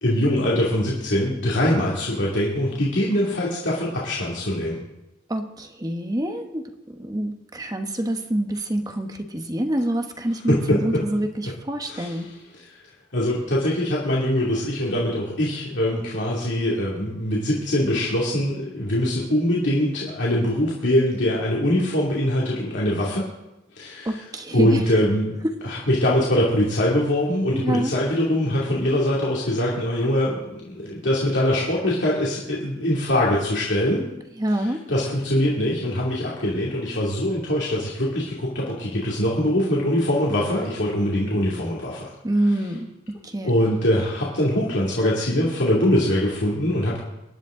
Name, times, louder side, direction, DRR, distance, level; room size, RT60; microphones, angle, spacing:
voice 1, 0.0-4.8 10.5-11.0 11.9-12.6 13.1-23.3 23.7-24.2 24.5-25.4 25.6-34.0 34.6-42.1 43.4-47.0, left 1 dB, 65° left, -6 dB, 2.7 m, -23 dB
voice 2, 5.3-12.3 24.0-24.8 27.5-27.9 34.4-34.8 42.2-43.5, right 1 dB, 20° right, 5 dB, 1.2 m, -26 dB
23.5 x 11.0 x 3.8 m, 0.96 s
head